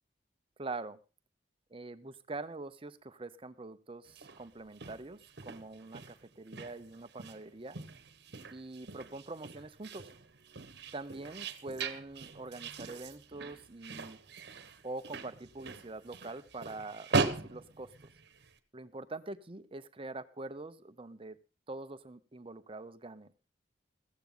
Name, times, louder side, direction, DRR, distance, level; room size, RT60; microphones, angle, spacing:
voice 1, 0.6-1.0 1.7-7.8 8.5-10.1 10.9-14.2 14.8-17.9 18.7-21.4 21.7-23.3, right 2 dB, 30° right, 12 dB, 0.7 m, -44 dB
sound 1, 4.1-18.5, right 4 dB, 55° right, 1.2 m, -40 dB
15.0 x 14.5 x 3.8 m, 0.32 s
head